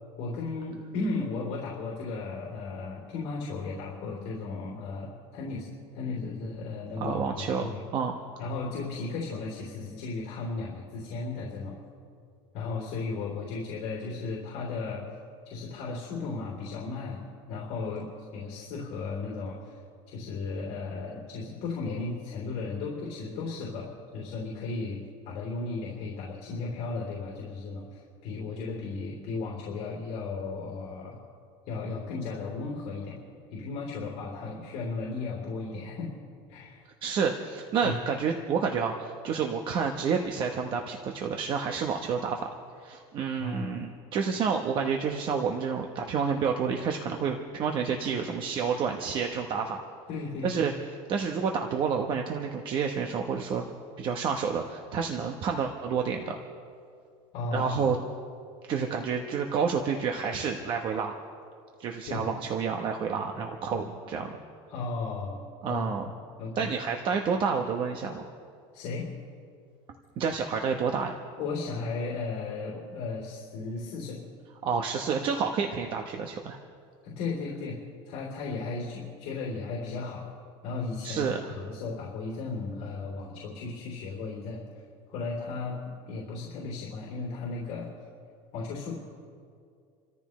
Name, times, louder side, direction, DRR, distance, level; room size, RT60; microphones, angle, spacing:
voice 1, 0.2-7.8 8.4-11.8 12.5-15.0 15.4-19.8 20.1-25.0 25.2-31.2 31.7-33.2 33.5-36.1 36.5-36.8 37.8-37.9 43.4-43.8 50.1-50.6 57.3-57.9 62.1-62.3 63.6-63.9 64.7-65.8 66.4-66.7 68.7-69.1 71.4-74.2 77.0-77.8 78.1-80.3 80.6-84.6 85.1-87.9 88.5-88.9, left 3 dB, 55° left, -3 dB, 3.3 m, -35 dB
voice 2, 7.0-8.2 37.0-42.5 42.8-49.8 50.4-50.7 51.1-53.7 54.0-56.4 57.5-58.0 58.7-61.1 61.8-64.3 65.6-66.1 66.5-68.2 70.2-71.1 74.6-76.6 81.0-81.5, right 6 dB, 40° right, 3 dB, 1.0 m, -29 dB
29.5 x 14.0 x 3.2 m, 2.3 s
cardioid pair, 150°, 13 cm